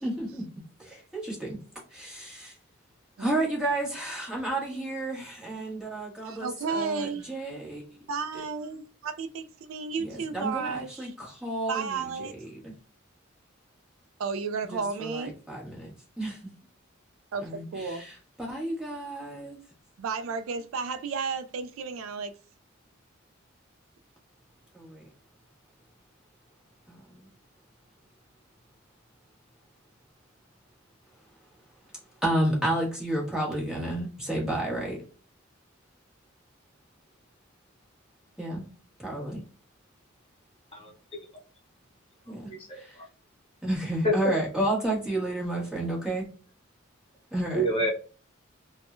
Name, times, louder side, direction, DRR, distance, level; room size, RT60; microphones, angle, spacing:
voice 1, 0.0-0.4 0.8-1.6 1.9-2.5 3.2-7.8 10.0-12.7 14.7-15.9 16.2-16.4 17.4-18.1 18.4-19.6 24.7-25.1 26.9-27.3 32.2-35.0 38.4-38.6 39.0-39.4 42.3-42.9 43.6-46.3 47.3-47.7, right 1 dB, 5° right, 1.2 m, -31 dB
voice 2, 6.2-7.3 8.1-11.1 11.7-12.3 14.2-15.4 17.3-18.0 20.0-22.3, right 5 dB, 75° right, 0.3 m, -33 dB
voice 3, 42.7-43.0 44.0-44.3 47.5-47.9, equal, 25° left, 0.8 m, -27 dB
3.5 x 2.1 x 2.5 m
head